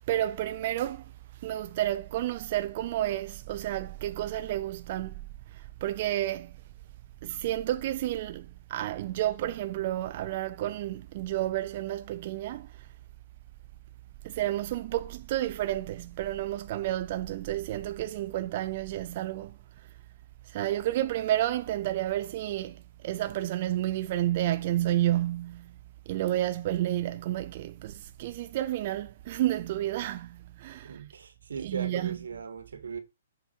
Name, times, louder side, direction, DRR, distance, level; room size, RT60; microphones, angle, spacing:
voice 1, 0.0-5.2 5.5-6.6 7.2-12.9 14.2-19.6 20.5-25.7 26.1-31.0 31.6-32.2, right 14 dB, 40° right, 0.5 m, -31 dB
voice 2, 30.8-33.0, right 6 dB, 90° right, 1.5 m, -38 dB
7.3 x 5.4 x 4.4 m
hypercardioid pair, 160°, 0 cm